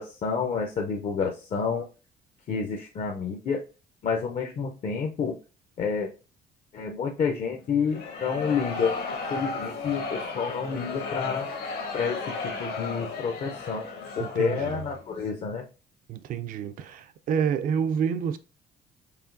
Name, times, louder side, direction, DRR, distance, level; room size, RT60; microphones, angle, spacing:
voice 1, 0.0-1.9 2.5-3.6 4.0-5.3 5.8-6.1 6.7-11.5 11.9-13.8 14.2-15.6, left 6 dB, 45° left, 0.5 m, -29 dB
sound 1, 7.8-15.1, left 4 dB, 65° left, 1.2 m, -34 dB
voice 2, 14.2-14.8 16.1-18.4, right 7 dB, 55° right, 0.4 m, -28 dB
4.9 x 2.8 x 2.5 m
cardioid pair, 110°, 17 cm